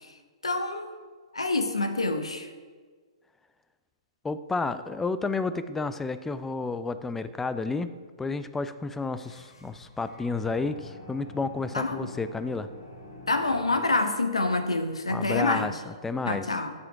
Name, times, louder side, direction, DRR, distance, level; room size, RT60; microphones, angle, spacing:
voice 1, 0.4-0.9 1.3-2.5 11.7-12.1 13.3-15.7 16.2-16.7, left 2 dB, 85° left, 7 dB, 1.3 m, -27 dB
voice 2, 4.2-7.9 8.2-12.7 15.1-16.5, left 3 dB, 10° left, 13 dB, 0.5 m, -31 dB
sound 1, 9.2-14.2, left 2 dB, 65° left, 3.3 m, -47 dB
14.0 x 7.9 x 4.8 m, 1.5 s
figure-of-eight pair, 120°, 3 cm